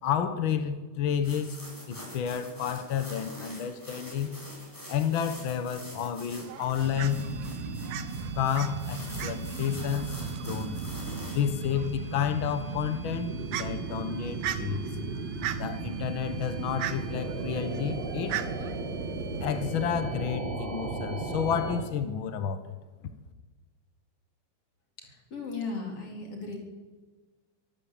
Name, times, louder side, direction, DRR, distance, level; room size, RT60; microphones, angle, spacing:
voice 1, 0.0-1.6 1.9-4.3 4.9-7.2 8.3-10.8 11.3-14.8 15.6-18.4 19.4-22.7, left 8 dB, 65° left, 10 dB, 1.2 m, -30 dB
sound 1, 1.2-11.4, equal, 5° left, 6.5 m, -46 dB
Fowl, 6.4-20.0, right 11 dB, 75° right, 2.8 m, -41 dB
sound 2, 6.8-21.8, right 3 dB, 50° right, 4.0 m, -35 dB
voice 2, 25.0-26.6, left 3 dB, 40° left, 2 dB, 5.0 m, -36 dB
25.0 x 13.5 x 8.7 m, 1.3 s
omnidirectional pair, 4.0 m